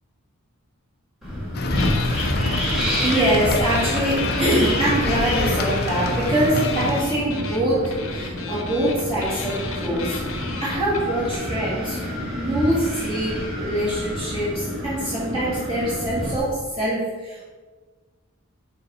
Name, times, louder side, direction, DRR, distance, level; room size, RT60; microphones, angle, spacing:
Wind, 1.2-16.4, left 1 dB, ahead, 1.7 m, -28 dB
sound 1, 1.5-7.0, left 2 dB, 45° left, 0.6 m, -27 dB
sound 2, 1.8-2.8 3.1-11.3, left 5 dB, 70° left, 1.0 m, -35 dB
voice 1, 2.1-2.6 3.0-10.2 10.6-17.5, right 1 dB, 25° right, -11 dB, 2.1 m, -24 dB
6.6 x 4.8 x 4.3 m, 1.4 s
head